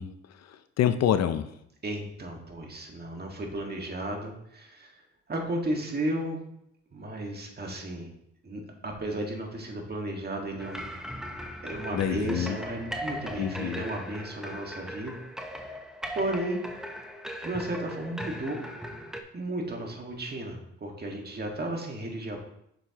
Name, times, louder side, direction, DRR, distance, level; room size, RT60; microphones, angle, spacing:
voice 1, 0.0-1.5 11.9-12.6 13.4-13.8, left 10 dB, 60° left, 11 dB, 0.5 m, -28 dB
voice 2, 1.8-6.4 6.9-8.1 8.4-10.8 11.6-15.2 16.1-16.6 17.4-18.6 19.3-22.4, right 1 dB, 35° right, 1 dB, 1.8 m, -34 dB
sound 1, 10.6-19.2, equal, ahead, 0.8 m, -39 dB
7.6 x 6.5 x 2.9 m, 0.75 s
cardioid pair, 90°, 30 cm